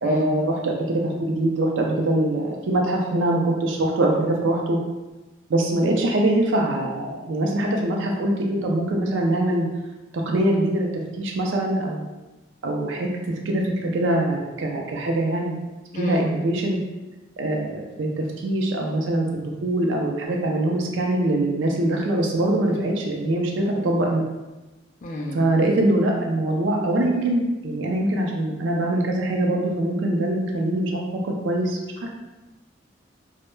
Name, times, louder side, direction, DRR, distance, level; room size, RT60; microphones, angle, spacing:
voice 1, 0.0-4.8 5.5-9.7 10.1-12.0 12.6-15.6 15.9-16.8 17.4-24.2 25.3-32.1, right 1 dB, 75° right, 0 dB, 0.4 m, -23 dB
voice 2, 25.0-25.5, left 1 dB, 40° left, 0 dB, 0.3 m, -31 dB
2.1 x 2.0 x 3.0 m, 1.1 s
head